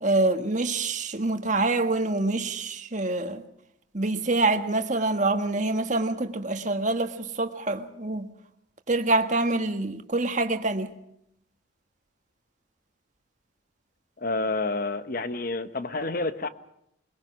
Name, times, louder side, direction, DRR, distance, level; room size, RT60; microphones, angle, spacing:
voice 1, 0.0-3.4 3.9-8.3 8.9-10.9, right 2 dB, 40° right, 6 dB, 1.6 m, -26 dB
voice 2, 14.2-16.5, left 2 dB, 45° left, 11 dB, 1.1 m, -29 dB
22.0 x 21.5 x 6.0 m, 0.76 s
head